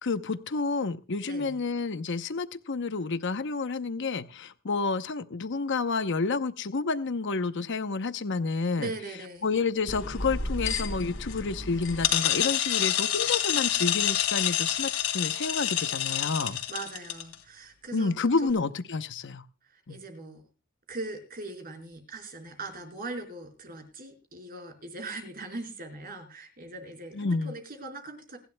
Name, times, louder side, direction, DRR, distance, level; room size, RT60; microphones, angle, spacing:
voice 1, 0.0-8.9 9.4-16.6 17.9-19.4 19.9-20.0 27.1-27.5, left 4 dB, 55° left, 11 dB, 0.8 m, -29 dB
voice 2, 1.2-1.6 8.8-9.5 16.7-18.5 19.7-20.4 20.9-28.4, right 2 dB, 45° right, 5 dB, 4.3 m, -40 dB
sound 1, 9.9-17.3, left 10 dB, 70° left, 2.9 m, -28 dB
27.5 x 11.0 x 2.2 m, 0.30 s
head